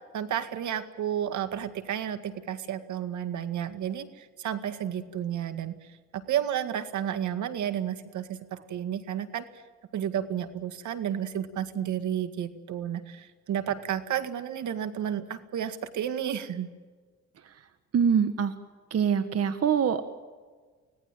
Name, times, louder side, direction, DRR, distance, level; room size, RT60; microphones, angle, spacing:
voice 1, 0.1-5.8 6.1-9.4 9.9-16.7, right 10 dB, 75° right, 10 dB, 2.0 m, -32 dB
voice 2, 17.9-18.5 18.9-20.0, right 7 dB, 50° right, 10 dB, 1.5 m, -24 dB
25.0 x 18.0 x 9.1 m, 1.4 s
cardioid pair, 90°, 30 cm